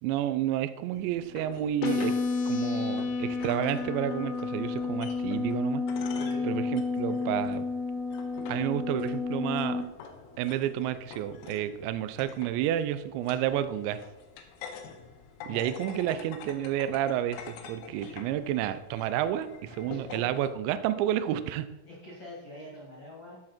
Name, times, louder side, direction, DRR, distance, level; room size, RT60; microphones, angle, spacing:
voice 1, 0.0-2.2 2.5-5.8 6.4-7.7 8.5-9.8 10.4-14.0 15.5-21.7, right 11 dB, 80° right, 12 dB, 2.6 m, -30 dB
sound 1, 0.9-20.5, left 6 dB, 85° left, 3.6 m, -47 dB
sound 2, 1.8-9.8, left 4 dB, 65° left, 2.9 m, -31 dB
voice 2, 6.1-6.7 7.0-7.2 15.4-15.7 18.0-18.2 19.9-20.2 21.9-23.4, left 1 dB, 30° left, -5 dB, 2.3 m, -45 dB
13.5 x 6.3 x 4.4 m, 0.99 s
omnidirectional pair, 5.7 m